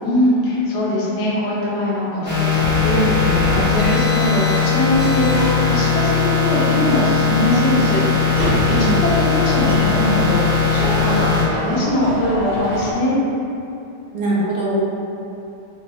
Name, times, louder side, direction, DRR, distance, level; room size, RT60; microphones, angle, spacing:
voice 1, 0.0-13.2, left 1 dB, 80° left, -7 dB, 0.6 m, -21 dB
sound 1, 2.2-11.4, left 5 dB, 25° left, 0.6 m, -18 dB
sound 2, 6.6-12.9, equal, 50° right, 0.7 m, -28 dB
voice 2, 14.1-14.8, right 2 dB, 70° right, -6 dB, 1.1 m, -21 dB
4.0 x 2.3 x 2.9 m, 2.8 s
omnidirectional pair, 2.2 m